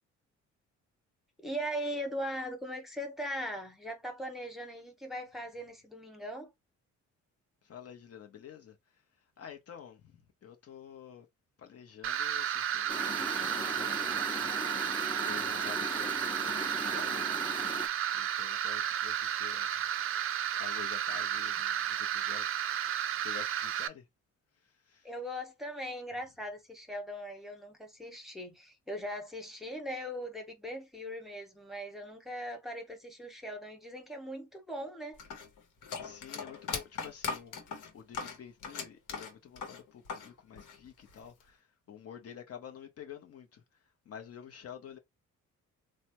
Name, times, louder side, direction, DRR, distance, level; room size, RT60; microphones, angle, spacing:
voice 1, 1.4-6.5 25.0-35.2, equal, ahead, 1.0 m, -40 dB
voice 2, 7.6-8.8 9.4-11.3 11.6-14.9 15.2-17.3 18.1-19.8 20.5-22.7 23.2-24.0 24.9-25.1 36.0-43.6 44.1-45.0, left 9 dB, 50° left, 0.7 m, -49 dB
sound 1, 12.0-23.9, right 10 dB, 45° right, 0.4 m, -33 dB
sound 2, 12.9-17.9, left 3 dB, 15° left, 0.4 m, -40 dB
sound 3, 35.2-40.3 40.6-41.4, left 5 dB, 85° left, 1.0 m, -39 dB
3.2 x 2.1 x 2.9 m
cardioid pair, 90°, 30 cm